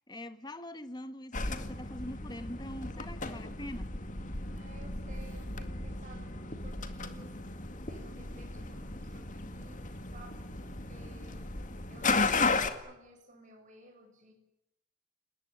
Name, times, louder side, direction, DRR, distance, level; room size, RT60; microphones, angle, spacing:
voice 1, 0.1-3.9, left 1 dB, 25° left, 11 dB, 1.5 m, -43 dB
sound 1, 1.3-12.7, left 3 dB, 45° left, 2.1 m, -35 dB
voice 2, 4.4-11.6 11.9-14.3, right 2 dB, 40° right, 3 dB, 7.3 m, -56 dB
29.5 x 19.5 x 9.8 m, 0.89 s
head